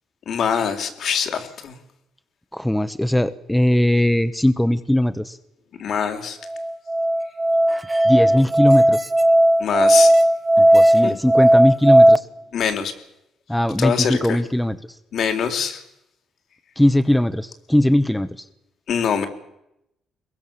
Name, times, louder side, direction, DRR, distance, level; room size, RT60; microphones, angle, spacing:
voice 1, 0.3-1.8 5.8-6.4 9.6-10.1 11.0-11.1 12.5-12.9 13.8-14.4 15.1-15.8 18.9-19.3, left 7 dB, 65° left, 6 dB, 3.8 m, -23 dB
voice 2, 2.5-5.4 8.0-9.1 10.6-12.3 13.5-14.9 16.8-18.5, left 1 dB, 5° left, 12 dB, 1.2 m, -20 dB
Musical instrument, 6.5-12.2, right 1 dB, 15° right, 1.1 m, -15 dB
22.5 x 22.5 x 7.2 m, 0.86 s
cardioid pair, 90°, 0 cm